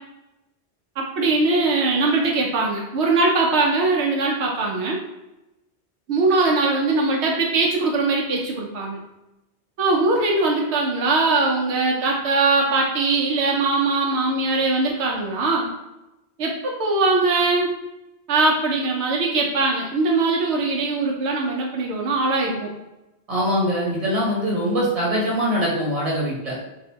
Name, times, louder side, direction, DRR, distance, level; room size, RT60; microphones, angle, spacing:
voice 1, 1.0-5.0 6.1-9.0 9.8-15.7 16.4-17.7 18.3-22.7, right 3 dB, 85° right, -1 dB, 0.9 m, -21 dB
voice 2, 23.3-26.5, equal, 35° right, -5 dB, 1.1 m, -22 dB
2.7 x 2.5 x 3.4 m, 0.97 s
omnidirectional pair, 1.1 m